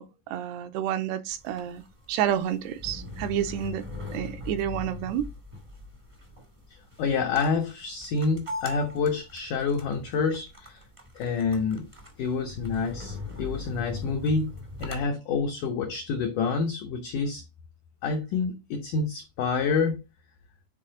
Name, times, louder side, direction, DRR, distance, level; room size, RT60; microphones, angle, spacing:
voice 1, 0.0-1.8 2.1-3.8 4.1-5.3, right 10 dB, 80° right, 2.7 m, -29 dB
sound 1, 1.3-15.0, left 2 dB, 30° right, 0.5 m, -41 dB
voice 2, 7.0-10.8 11.2-11.9 12.2-14.5 14.8-17.4 18.0-20.0, left 4 dB, 85° left, 1.8 m, -28 dB
9.6 x 4.3 x 3.8 m
omnidirectional pair, 5.0 m